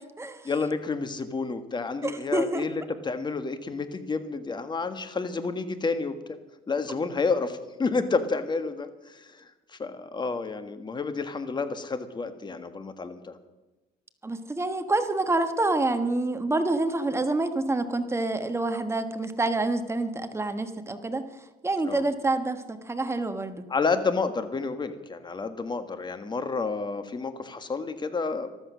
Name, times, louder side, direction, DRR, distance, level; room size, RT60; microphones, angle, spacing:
voice 1, 0.4-6.1 6.7-13.4 21.9-22.0 23.7-28.5, left 4 dB, 25° left, 10 dB, 1.6 m, -30 dB
voice 2, 2.0-2.6 14.2-21.2 21.6-23.6, right 2 dB, 15° right, 8 dB, 1.4 m, -27 dB
14.0 x 13.0 x 6.3 m, 1.1 s
cardioid pair, 110°, 17 cm